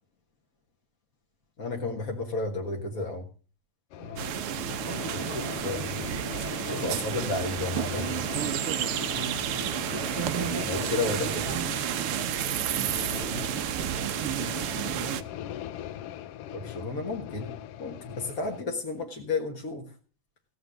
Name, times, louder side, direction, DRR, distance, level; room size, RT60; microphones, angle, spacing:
voice 1, 1.6-3.3 5.3-6.0 6.7-8.2 10.7-11.8 16.5-19.9, left 3 dB, 40° left, 1 dB, 1.3 m, -32 dB
sound 1, 3.9-18.6, left 11 dB, 90° left, 1.3 m, -40 dB
voice 2, 4.0-5.8 6.4-7.5 9.1-9.5 10.0-12.8 13.3-14.2, right 4 dB, 70° right, 4 dB, 0.5 m, -40 dB
sound 2, 4.2-15.2, right 11 dB, 90° right, 1.2 m, -31 dB
16.0 x 7.8 x 6.2 m, 0.39 s
omnidirectional pair, 3.5 m